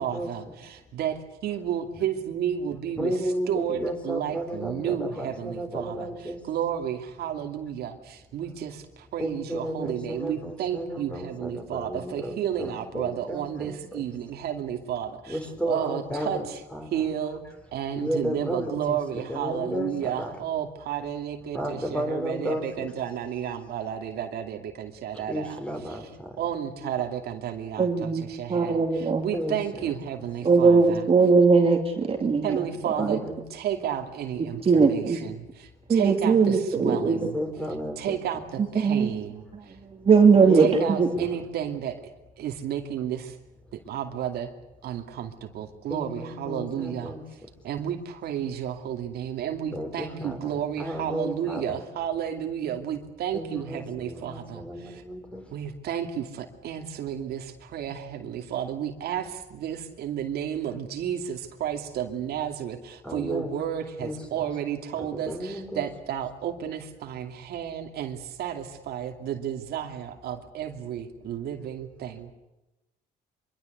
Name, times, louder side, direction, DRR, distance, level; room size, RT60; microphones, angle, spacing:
voice 1, 0.0-3.1 3.5-6.1 6.5-15.4 15.7-16.6 16.9-17.4 17.7-25.6 25.9-26.0 26.4-31.1 32.4-33.2 33.5-37.3 38.0-39.8 40.5-42.0 42.4-43.4 43.7-44.5 44.8-47.1 47.6-55.0 55.5-72.3, right 9 dB, 70° right, 5 dB, 2.6 m, -32 dB
voice 2, 3.0-6.5 9.2-14.0 15.3-16.5 16.7-17.1 17.9-20.4 21.5-22.9 25.1-26.4 26.8-26.9 29.3-29.9 32.6-33.4 37.0-38.4 40.3-41.3 45.9-47.2 49.7-51.8 53.3-55.5 63.0-63.5 64.0-64.5 65.3-65.8, equal, 5° left, 5 dB, 5.1 m, -33 dB
voice 3, 27.8-29.2 30.4-32.6 33.0-33.2 34.7-35.2 35.9-37.2 38.8-39.1 40.0-40.7 41.0-41.1, right 5 dB, 35° right, 3 dB, 2.7 m, -20 dB
24.5 x 23.5 x 8.2 m, 0.98 s
cardioid pair, 110°, 17 cm